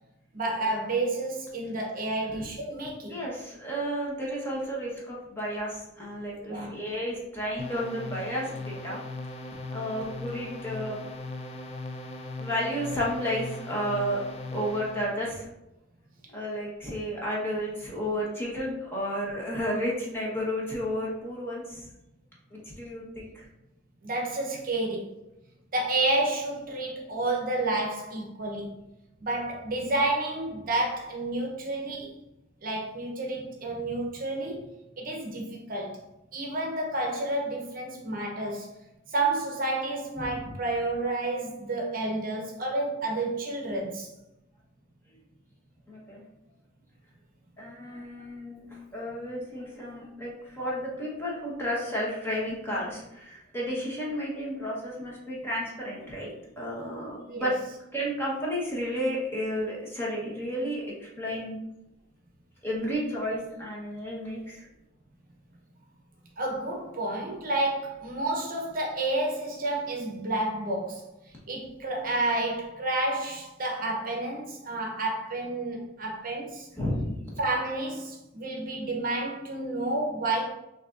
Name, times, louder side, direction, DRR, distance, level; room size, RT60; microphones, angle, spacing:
voice 1, 0.3-3.2 6.5-6.7 24.0-25.0 25.7-28.8 29.2-32.1 32.6-36.0 36.3-38.7 39.1-44.1 57.3-57.5 66.4-71.1 71.5-76.7 77.4-80.5, right 2 dB, 45° right, 0 dB, 0.8 m, -30 dB
voice 2, 3.1-9.0 9.7-11.0 12.4-14.2 14.5-15.5 16.3-21.9 22.5-23.5 40.2-40.6 45.9-46.2 47.6-48.7 48.9-57.5 57.9-61.6 62.6-64.6 76.7-77.2, equal, 10° left, -5 dB, 1.1 m, -32 dB
sound 1, 7.6-15.1, left 2 dB, 30° left, 0.4 m, -39 dB
6.2 x 2.7 x 2.5 m, 0.92 s
head